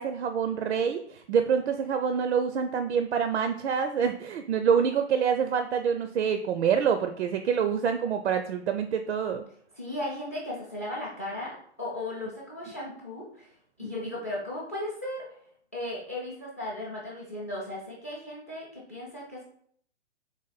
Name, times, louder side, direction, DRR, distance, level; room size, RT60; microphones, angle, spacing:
voice 1, 0.0-9.4 13.8-14.1, right 7 dB, 70° right, 8 dB, 0.5 m, -26 dB
voice 2, 9.8-13.5 13.8-15.3 15.7-19.4, left 1 dB, 15° left, -3 dB, 0.3 m, -36 dB
4.0 x 3.0 x 4.0 m, 0.63 s
hypercardioid pair, 150°, 35 cm